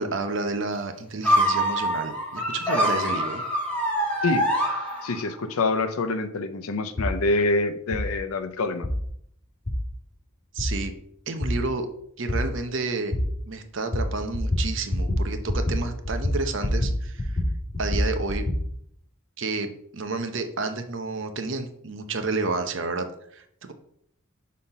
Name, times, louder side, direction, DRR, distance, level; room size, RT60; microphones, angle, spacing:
voice 1, 0.0-3.4 10.5-10.9 11.3-11.9 12.2-13.2 13.5-17.4 17.8-18.5 19.4-23.7, right 3 dB, 60° right, 7 dB, 0.8 m, -30 dB
sound 1, 1.2-5.4, equal, 5° left, 1.8 m, -25 dB
voice 2, 5.0-8.9, left 3 dB, 85° left, 10 dB, 0.7 m, -26 dB
sound 2, 7.0-7.1 7.9-8.0 8.8-8.9 9.7-9.8 10.6-10.7 11.4-11.5 12.3-12.4 13.1-13.2 13.9-14.1 14.3-14.6 14.9-15.2 15.5-15.8 16.0-16.9 17.2-18.6, left 1 dB, 35° left, 2.2 m, -25 dB
5.7 x 4.2 x 5.3 m, 0.69 s
head